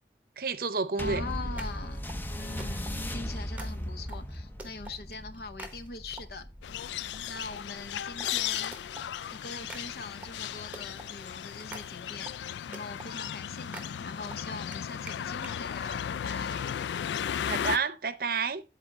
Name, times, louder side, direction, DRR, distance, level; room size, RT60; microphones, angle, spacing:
voice 1, 0.4-1.2 17.5-18.6, right 5 dB, 55° right, 0.7 m, -30 dB
voice 2, 1.0-2.0 2.3-6.8 7.2-8.7 9.3-16.7, left 3 dB, 60° left, 0.7 m, -42 dB
sound 1, 1.0-9.8 10.5-10.6, equal, 10° left, 0.5 m, -38 dB
sound 2, 1.1-6.6 7.1-15.6 16.3-16.6, right 2 dB, 10° right, 1.0 m, -48 dB
sound 3, 6.6-17.8, left 9 dB, 85° left, 0.3 m, -35 dB
9.8 x 4.3 x 4.6 m
head